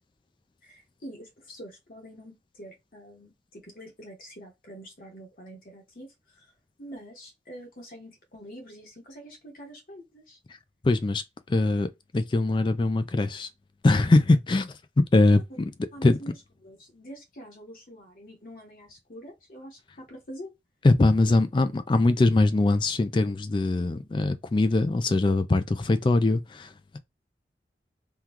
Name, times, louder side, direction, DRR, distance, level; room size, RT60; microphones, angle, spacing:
voice 1, 0.6-6.5 6.8-10.4 15.9-16.3 16.6-20.5, equal, 50° left, 1.1 m, -45 dB
voice 2, 10.8-11.2 11.5-13.5 13.8-15.7 16.0-16.2 20.8-27.0, left 2 dB, 25° left, 0.3 m, -22 dB
3.6 x 2.3 x 2.9 m
head